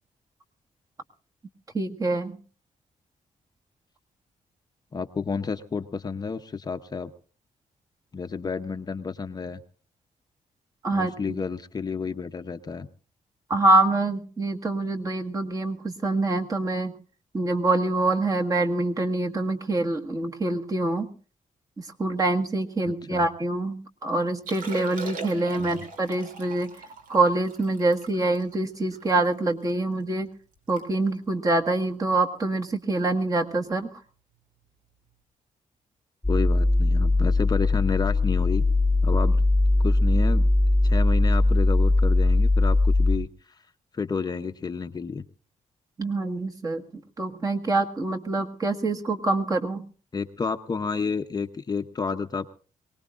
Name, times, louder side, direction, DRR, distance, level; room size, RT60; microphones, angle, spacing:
voice 1, 1.7-2.4 10.8-11.4 13.5-16.9 17.3-21.1 21.8-26.7 27.1-30.3 30.7-34.0 46.0-49.9, right 2 dB, 25° right, 4 dB, 1.6 m, -25 dB
voice 2, 4.9-7.1 8.1-9.6 10.9-12.9 23.1-23.2 25.6-25.7 36.3-38.6 39.0-39.4 39.8-40.5 40.8-43.3 43.9-45.2 50.1-52.5, left 5 dB, 30° left, 7 dB, 0.7 m, -30 dB
Liquid, 24.3-29.7 30.2-30.3 30.5-30.9 31.1-31.4 32.0-32.2 33.7-33.8, right 4 dB, 75° right, 3.3 m, -41 dB
sound 1, 36.2-43.2, left 2 dB, 5° left, 1.7 m, -20 dB
23.0 x 19.0 x 2.5 m, 0.40 s
wide cardioid pair, 150°, 14 cm